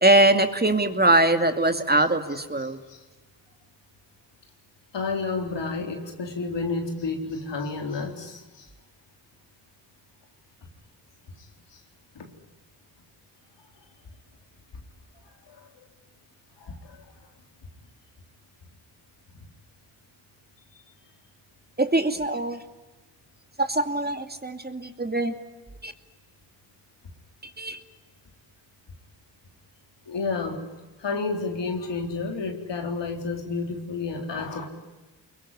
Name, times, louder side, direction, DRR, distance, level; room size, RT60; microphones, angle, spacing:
voice 1, 0.0-2.8 21.8-22.6 23.6-25.4 25.8-25.9 27.6-27.8, right 2 dB, 20° right, 7 dB, 2.6 m, -22 dB
voice 2, 2.6-3.0 4.9-8.7 11.7-11.8 12.2-12.3 15.5-15.9 16.6-17.0 30.1-30.6 31.0-34.7, left 4 dB, 80° left, 3 dB, 3.9 m, -31 dB
24.5 x 22.0 x 9.7 m, 1.2 s
cardioid pair, 50°, 42 cm